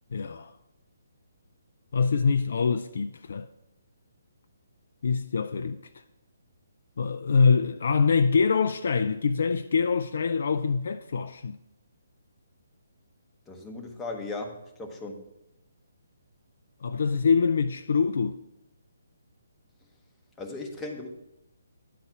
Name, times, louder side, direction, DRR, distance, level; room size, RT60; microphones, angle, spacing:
voice 1, 0.1-0.5 1.9-3.5 5.0-5.8 7.0-11.6 16.8-18.4, left 5 dB, 60° left, 0.3 m, -24 dB
voice 2, 13.5-15.2 20.4-21.1, left 2 dB, 10° left, 1.0 m, -37 dB
10.0 x 4.1 x 5.8 m
figure-of-eight pair, 140°, 0 cm